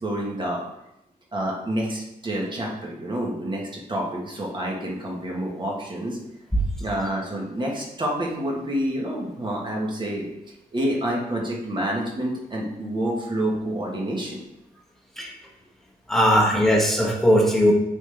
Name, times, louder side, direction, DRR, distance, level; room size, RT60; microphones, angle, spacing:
voice 1, 0.0-0.6 1.3-6.2 6.8-10.3 10.7-14.4, right 1 dB, 30° right, -2 dB, 1.4 m, -28 dB
voice 2, 16.1-17.7, equal, ahead, -1 dB, 1.2 m, -19 dB
8.8 x 3.8 x 3.4 m, 0.86 s
wide cardioid pair, 145°, 16 cm